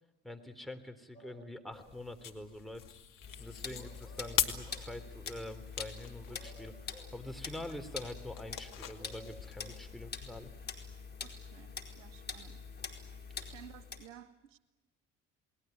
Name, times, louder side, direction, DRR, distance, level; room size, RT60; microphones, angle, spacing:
voice 1, 0.2-2.8 3.4-6.7 7.1-10.5, left 1 dB, ahead, 3.5 m, -45 dB
sound 1, 1.1-2.0 3.8-5.0 6.0-7.2 8.4-9.9, equal, 75° left, 3.8 m, -57 dB
sound 2, 1.7-10.5, left 9 dB, 60° left, 2.3 m, -42 dB
sound 3, 3.2-14.1, left 5 dB, 25° left, 4.5 m, -45 dB
voice 2, 11.2-12.6 13.4-14.6, right 10 dB, 80° right, 1.5 m, -55 dB
29.5 x 20.0 x 9.3 m
hypercardioid pair, 55°, 36 cm